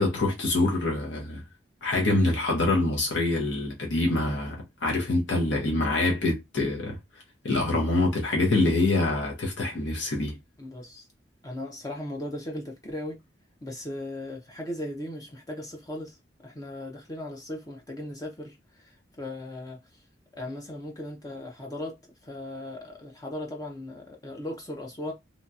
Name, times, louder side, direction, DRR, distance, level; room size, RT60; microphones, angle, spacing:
voice 1, 0.0-1.4 1.8-7.0 7.4-10.4, left 2 dB, 75° left, 0.9 m, -25 dB
voice 2, 10.6-11.1 11.4-13.2 13.6-16.2 16.4-20.0 20.3-25.1, left 1 dB, 20° left, 0.5 m, -37 dB
2.9 x 2.7 x 2.3 m
head